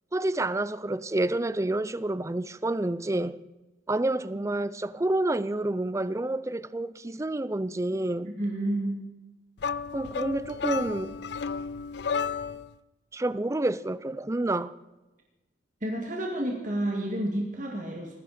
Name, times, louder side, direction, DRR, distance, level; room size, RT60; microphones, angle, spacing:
voice 1, 0.1-3.4 3.9-8.3 9.9-11.2 13.1-14.7, right 2 dB, 15° right, 0.4 m, -29 dB
voice 2, 8.2-9.0 15.8-18.1, right 1 dB, 40° right, 2.1 m, -30 dB
sound 1, 9.6-12.7, left 6 dB, 60° left, 0.5 m, -32 dB
20.0 x 15.5 x 4.3 m
head